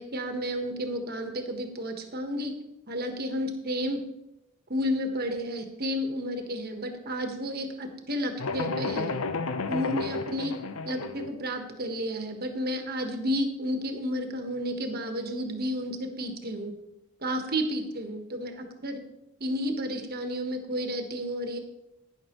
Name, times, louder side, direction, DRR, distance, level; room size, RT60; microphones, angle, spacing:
voice 1, 0.0-2.5 2.9-4.0 4.7-9.1 9.7-10.5 10.8-16.7 17.2-19.0 19.4-21.6, equal, 45° right, 5 dB, 1.3 m, -31 dB
sound 1, 8.4-11.3, left 4 dB, 85° left, 0.7 m, -32 dB
11.5 x 10.0 x 3.0 m, 0.88 s
head